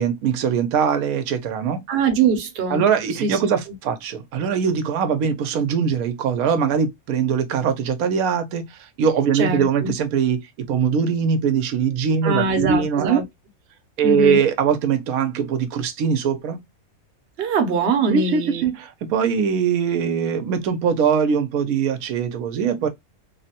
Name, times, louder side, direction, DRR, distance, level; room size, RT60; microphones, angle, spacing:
voice 1, 0.0-1.8 2.7-13.2 14.0-16.6 18.1-22.9, right 7 dB, 90° right, 1.1 m, -21 dB
voice 2, 1.9-2.8 3.2-3.4 9.3-9.9 12.2-13.2 14.0-14.4 17.4-18.7, right 4 dB, 55° right, 0.8 m, -22 dB
3.2 x 2.1 x 2.7 m
omnidirectional pair, 1.5 m